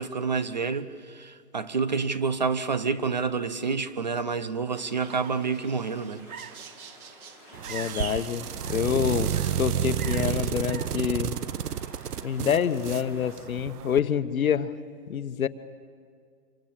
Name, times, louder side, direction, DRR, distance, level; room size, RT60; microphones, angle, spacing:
voice 1, 0.0-6.2, right 5 dB, 30° right, 0.6 m, -28 dB
sound 1, 4.7-13.4, left 1 dB, 5° right, 1.5 m, -52 dB
sound 2, 4.9-11.2, right 7 dB, 65° right, 1.2 m, -44 dB
sound 3, 7.5-14.0, right 9 dB, 85° right, 0.8 m, -31 dB
voice 2, 7.7-11.4 12.2-14.8 15.1-15.5, left 8 dB, 65° left, 1.2 m, -27 dB
26.0 x 25.0 x 7.5 m
hypercardioid pair, 170°, 46 cm